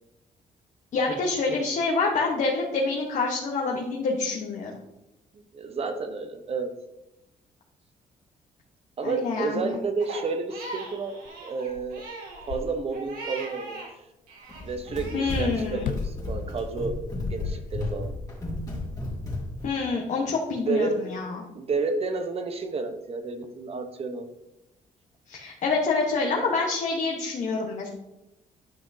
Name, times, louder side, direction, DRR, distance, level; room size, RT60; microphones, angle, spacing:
voice 1, 0.9-4.7 9.0-9.8 15.1-15.9 19.6-21.4 25.3-27.9, left 4 dB, 60° left, -1 dB, 1.2 m, -27 dB
voice 2, 5.5-6.7 9.0-12.0 12.5-13.9 14.6-17.0 17.3-18.1 20.6-21.1 21.5-24.3, right 4 dB, 45° right, 7 dB, 0.9 m, -30 dB
Crying sobbing, 10.0-13.9 14.3-15.3, right 3 dB, 80° right, 2.3 m, -40 dB
sound 1, 11.2-11.3 11.7-13.2 15.7-16.2 17.0-18.2, left 7 dB, 90° left, 0.4 m, -36 dB
Run, 14.5-19.7, left 2 dB, 25° left, 2.2 m, -33 dB
10.0 x 5.7 x 2.8 m, 0.93 s
cardioid pair, 100°, 14 cm